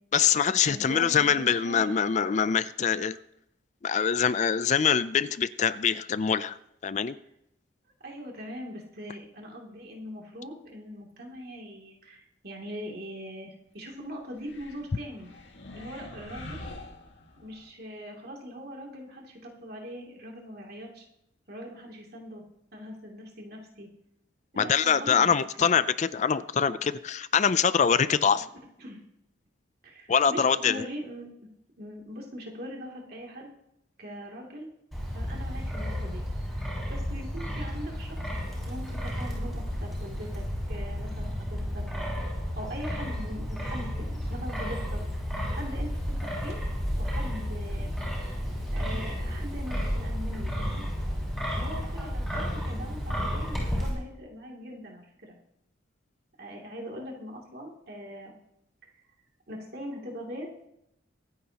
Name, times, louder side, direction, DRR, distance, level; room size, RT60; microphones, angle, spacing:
voice 1, 0.1-3.2 3.8-6.6 6.8-7.2 24.6-28.5 30.1-30.8, left 7 dB, 35° left, 15 dB, 0.4 m, -24 dB
voice 2, 0.6-2.0 8.0-15.3 15.7-16.6 17.4-21.1 21.5-22.4 22.7-23.9 24.5-25.7 28.8-29.0 29.8-31.5 31.8-33.5 34.0-34.7 35.1-36.2 36.5-38.2 38.7-41.8 42.5-45.0 45.5-46.6 47.0-47.9 48.7-50.9 51.6-55.4 56.4-58.3 59.5-60.5, equal, 50° right, -1 dB, 2.7 m, -41 dB
sound 1, 14.3-17.7, left 1 dB, 65° left, 2.0 m, -45 dB
Wind, 34.9-53.9, equal, ahead, 5.7 m, -32 dB
23.5 x 9.5 x 2.9 m, 0.80 s
head